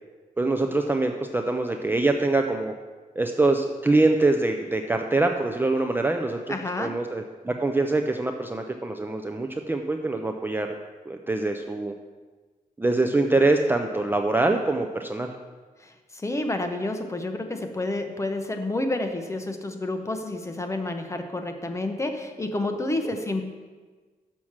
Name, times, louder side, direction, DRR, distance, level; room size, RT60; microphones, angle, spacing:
voice 1, 0.4-2.7 3.2-10.7 11.1-11.9 12.8-15.3 23.0-23.1, right 2 dB, 15° right, 4 dB, 0.4 m, -24 dB
voice 2, 6.5-7.0 15.8-23.4, left 2 dB, 20° left, 5 dB, 0.8 m, -29 dB
6.3 x 5.8 x 7.2 m, 1.4 s
wide cardioid pair, 130°, 15 cm